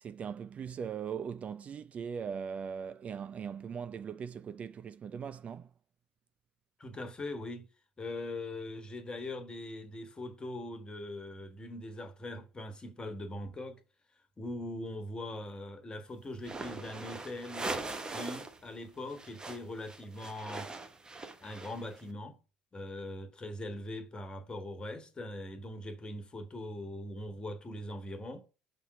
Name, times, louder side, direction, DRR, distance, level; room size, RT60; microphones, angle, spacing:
voice 1, 0.0-5.7, right 7 dB, 35° right, 0.4 m, -40 dB
voice 2, 6.8-7.6 8.0-13.8 14.4-17.7 18.1-20.7 21.4-22.3 22.7-28.4, left 1 dB, 25° left, 1.4 m, -41 dB
sound 1, 16.4-18.6 18.8-22.0, right 3 dB, 20° right, 1.0 m, -41 dB
5.6 x 3.8 x 5.7 m
hypercardioid pair, 65°, 4 cm